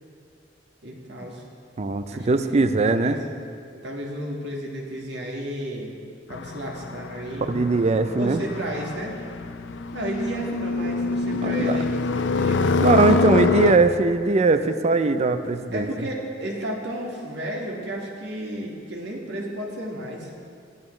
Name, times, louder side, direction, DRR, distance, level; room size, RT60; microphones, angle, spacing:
voice 1, 0.8-1.4 2.1-3.2 3.7-5.9 6.3-7.5 8.2-9.2 9.9-13.3 15.7-20.3, equal, 70° right, -2 dB, 1.9 m, -33 dB
voice 2, 1.8-3.2 7.5-8.4 11.3-11.8 12.8-15.9, right 3 dB, 40° right, 10 dB, 0.5 m, -20 dB
sound 1, 6.3-13.8, left 4 dB, 80° left, 0.5 m, -25 dB
17.0 x 11.0 x 3.3 m, 2.4 s
head